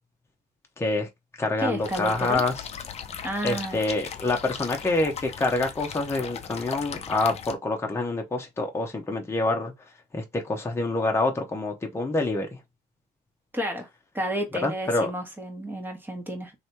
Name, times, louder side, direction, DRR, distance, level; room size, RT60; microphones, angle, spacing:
voice 1, 0.8-1.1 1.4-2.5 3.4-9.7 10.1-12.5 14.6-15.1, left 2 dB, 15° left, 1.1 m, -26 dB
voice 2, 1.6-2.4 3.2-3.8 13.5-13.9 14.1-16.5, right 1 dB, 10° right, 1.5 m, -31 dB
sound 1, 1.8-7.5, left 7 dB, 40° left, 0.6 m, -37 dB
3.2 x 2.8 x 4.4 m
cardioid pair, 110°, 17 cm